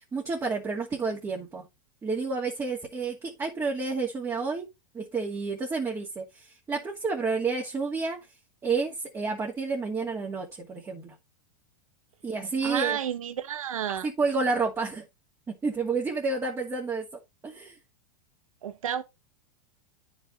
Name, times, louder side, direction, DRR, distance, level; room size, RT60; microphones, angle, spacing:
voice 1, 0.0-1.6 2.0-4.7 4.9-8.2 8.6-11.1 12.2-13.0 13.9-15.0 15.6-17.1 17.4-17.8, right 4 dB, 20° right, 2.3 m, -30 dB
voice 2, 12.6-14.1 18.6-19.0, right 9 dB, 90° right, 1.1 m, -31 dB
9.7 x 5.5 x 4.0 m
hypercardioid pair, 115°, 17 cm